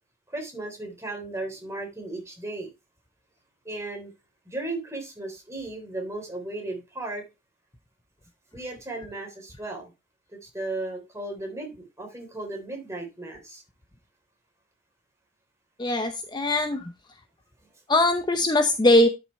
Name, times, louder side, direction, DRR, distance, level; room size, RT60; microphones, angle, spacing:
voice 1, 0.3-2.7 3.7-4.1 4.5-7.2 8.5-9.9 10.3-13.6, right 2 dB, 15° right, 2 dB, 3.6 m, -35 dB
voice 2, 15.8-16.9 17.9-19.1, left 1 dB, 25° left, 7 dB, 0.7 m, -21 dB
11.5 x 6.1 x 3.2 m, 0.24 s
head